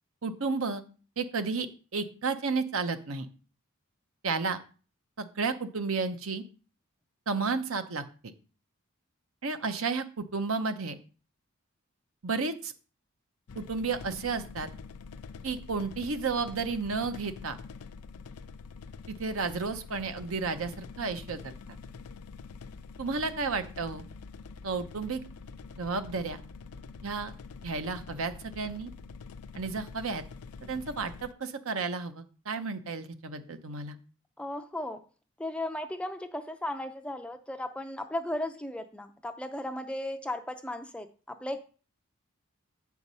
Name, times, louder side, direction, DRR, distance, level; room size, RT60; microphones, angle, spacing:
voice 1, 0.2-0.8 1.2-1.7 1.9-3.3 4.2-4.6 5.2-6.4 7.3-8.0 9.4-10.9 12.2-12.7 13.5-14.7 15.4-17.6 19.1-21.5 23.0-24.1 24.6-25.2 25.8-26.4 27.0-27.3 27.6-28.9 29.5-30.2 30.6-34.0, right 4 dB, 70° right, 9 dB, 0.8 m, -32 dB
sound 1, 13.5-31.3, left 4 dB, 90° left, 0.5 m, -46 dB
voice 2, 34.4-35.0 35.4-41.6, left 1 dB, 5° left, 7 dB, 0.4 m, -36 dB
8.1 x 4.6 x 5.4 m, 0.37 s
head